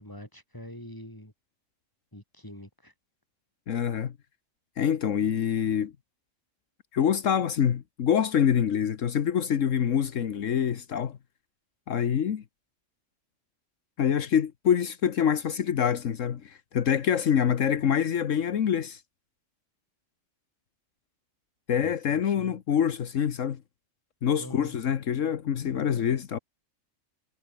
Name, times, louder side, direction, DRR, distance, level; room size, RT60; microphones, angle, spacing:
voice 1, 0.0-1.3 2.1-2.9 21.8-22.6 24.4-24.8, left 1 dB, 15° left, 6.4 m, -45 dB
voice 2, 3.7-4.1 4.8-5.9 6.9-11.2 11.9-12.4 14.0-19.0 21.7-23.6 24.2-26.4, left 8 dB, 75° left, 1.4 m, -25 dB
omnidirectional pair, 1.3 m